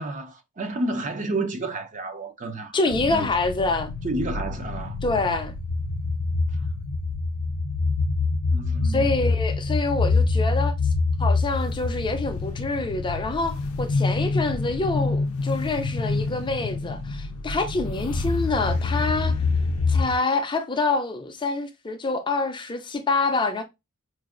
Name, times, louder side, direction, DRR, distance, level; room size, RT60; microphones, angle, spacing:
voice 1, 0.0-3.3 4.0-5.0 6.5-6.6 8.5-9.2, right 2 dB, 35° right, 0.6 m, -31 dB
voice 2, 2.7-3.9 5.0-5.5 8.9-10.7 11.2-19.4 19.9-23.6, left 3 dB, 20° left, 0.5 m, -26 dB
sound 1, 2.9-20.1, left 3 dB, 75° left, 0.5 m, -26 dB
4.7 x 2.5 x 2.4 m
head